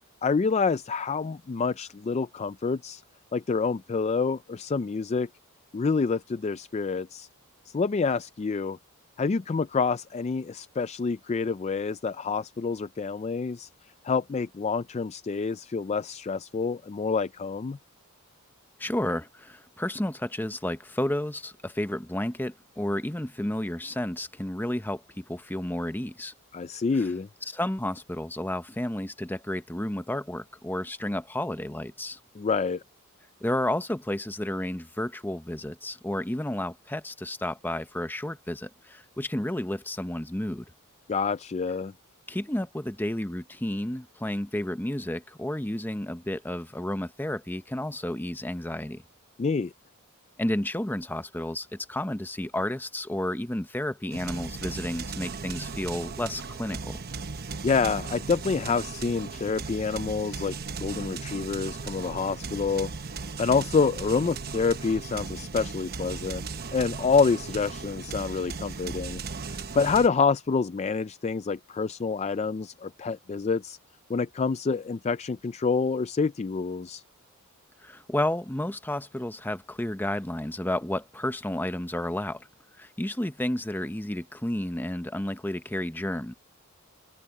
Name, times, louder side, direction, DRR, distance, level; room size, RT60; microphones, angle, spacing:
voice 1, 0.2-3.0 3.3-5.3 5.7-7.3 7.7-8.8 9.2-13.7 14.0-17.8 26.5-27.3 32.4-32.8 41.1-41.9 49.4-49.7 57.6-62.9 63.4-66.4 66.7-69.2 69.5-73.8 74.1-77.0, left 5 dB, 30° left, 0.3 m, -27 dB
voice 2, 18.8-26.3 27.0-27.1 27.5-32.2 33.4-40.6 42.3-49.0 50.4-57.0 77.8-82.5 82.8-86.3, left 1 dB, 10° left, 0.8 m, -31 dB
sound 1, 54.1-70.1, right 4 dB, 45° right, 1.0 m, -37 dB
open air
head